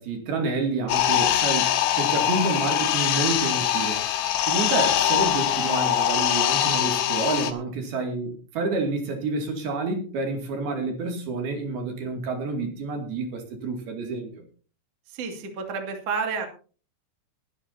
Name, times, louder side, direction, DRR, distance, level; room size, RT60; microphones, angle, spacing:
voice 1, 0.0-4.0 4.4-14.4, right 3 dB, 55° right, 3 dB, 3.9 m, -29 dB
sound 1, 0.9-7.5, left 11 dB, 75° left, 3.4 m, -23 dB
voice 2, 15.1-16.5, right 5 dB, 40° right, 3 dB, 2.5 m, -30 dB
22.0 x 11.5 x 2.8 m, 0.38 s
omnidirectional pair, 5.6 m